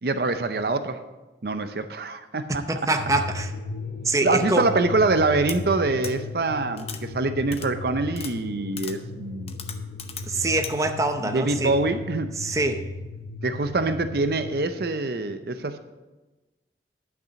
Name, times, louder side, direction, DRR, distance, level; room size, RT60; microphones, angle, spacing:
voice 1, 0.0-1.0 1.4-2.6 4.2-9.5 11.3-12.3 13.4-15.8, right 3 dB, 55° right, 9 dB, 0.6 m, -25 dB
voice 2, 2.7-3.5 4.0-4.7 10.3-11.7 12.4-12.9, right 2 dB, 20° right, 6 dB, 0.7 m, -24 dB
sound 1, 3.0-14.6, left 3 dB, 70° left, 1.0 m, -36 dB
sound 2, 5.5-5.6 6.0-6.1 6.8-7.0 7.5-7.7 8.1-8.3 8.8-9.0 9.5-10.3 10.6-10.7, left 8 dB, 35° left, 0.7 m, -36 dB
10.5 x 6.0 x 7.0 m, 1.1 s
head